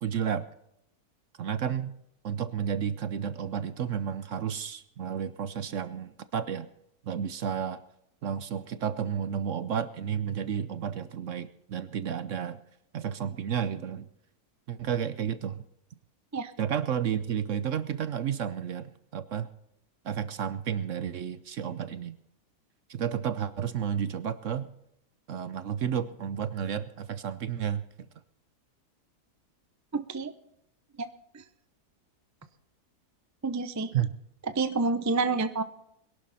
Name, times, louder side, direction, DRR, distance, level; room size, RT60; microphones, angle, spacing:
voice 1, 0.0-0.5 1.4-1.9 2.2-6.7 7.0-7.8 8.2-12.6 12.9-14.1 14.7-15.6 16.6-19.5 20.0-22.2 22.9-24.7 25.3-27.8 33.9-34.1, right 8 dB, 60° right, 14 dB, 1.0 m, -31 dB
voice 2, 29.9-30.3 31.0-31.1 33.4-33.9 34.5-35.6, right 3 dB, 20° right, 11 dB, 0.5 m, -28 dB
22.0 x 11.5 x 4.2 m, 0.80 s
omnidirectional pair, 1.7 m